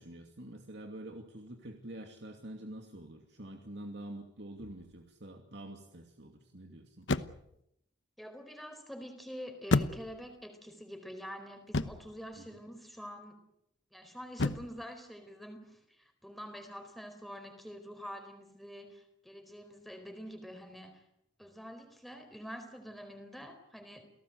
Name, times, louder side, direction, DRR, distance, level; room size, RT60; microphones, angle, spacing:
voice 1, 0.0-7.1 12.4-12.6, right 1 dB, 60° right, 3 dB, 2.6 m, -47 dB
sound 1, 4.6-5.0 7.0-7.6 9.7-10.4 11.7-12.2 14.4-14.8, left 3 dB, 70° left, 1.0 m, -32 dB
voice 2, 8.2-13.4 13.9-21.0 21.4-24.1, equal, ahead, 6 dB, 4.3 m, -46 dB
29.0 x 18.0 x 8.1 m, 0.80 s
head